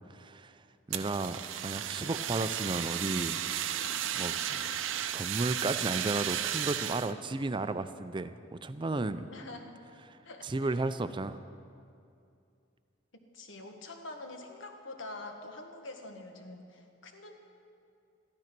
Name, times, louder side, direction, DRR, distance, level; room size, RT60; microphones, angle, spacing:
voice 1, 0.1-0.6 0.9-3.4 4.1-4.6 4.9-9.3 10.4-11.4, right 2 dB, 25° right, 12 dB, 0.4 m, -34 dB
Fire, 0.9-7.1, right 10 dB, 80° right, 0.6 m, -34 dB
voice 2, 9.3-9.7 10.2-10.8 13.3-17.4, left 2 dB, 70° left, 4 dB, 1.5 m, -45 dB
14.0 x 12.0 x 6.0 m, 2.5 s
head